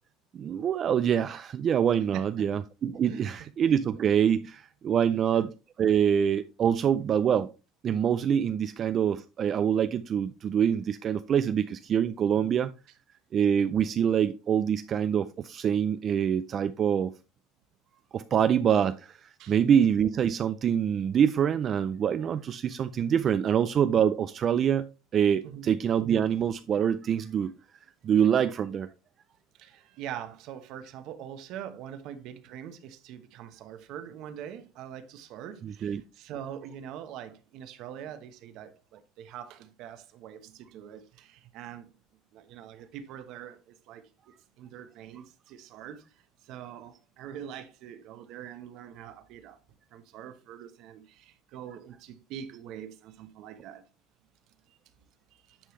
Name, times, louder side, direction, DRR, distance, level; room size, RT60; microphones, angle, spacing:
voice 1, 0.3-5.5 5.8-7.5 7.8-12.7 13.3-17.1 18.1-24.9 25.1-27.5 28.0-28.9 35.6-36.0, right 8 dB, 30° right, 0.4 m, -25 dB
voice 2, 2.1-2.5 3.1-3.3 5.1-5.4 12.4-12.5 19.4-19.5 25.4-25.7 29.6-41.9 42.3-44.1 44.6-46.0 46.4-49.6 49.9-53.8 55.3-55.6, right 9 dB, 50° right, 1.1 m, -43 dB
10.0 x 5.5 x 3.2 m
cardioid pair, 160°, 0 cm